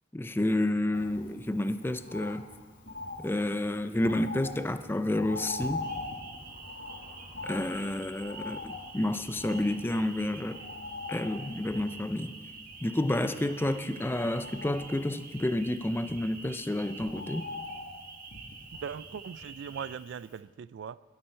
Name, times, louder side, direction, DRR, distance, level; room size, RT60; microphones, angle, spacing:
voice 1, 0.1-2.4 3.2-5.9 7.4-10.6 11.1-12.4 12.8-17.5, left 1 dB, 10° left, 10 dB, 0.4 m, -30 dB
Bird, 0.9-20.0 20.4-20.5, left 3 dB, 70° left, 1.9 m, -43 dB
sound 1, 5.8-20.0, right 4 dB, 50° right, 1.2 m, -48 dB
voice 2, 18.8-21.0, right 7 dB, 70° right, 17 dB, 0.3 m, -40 dB
17.0 x 12.0 x 4.4 m, 1.4 s
head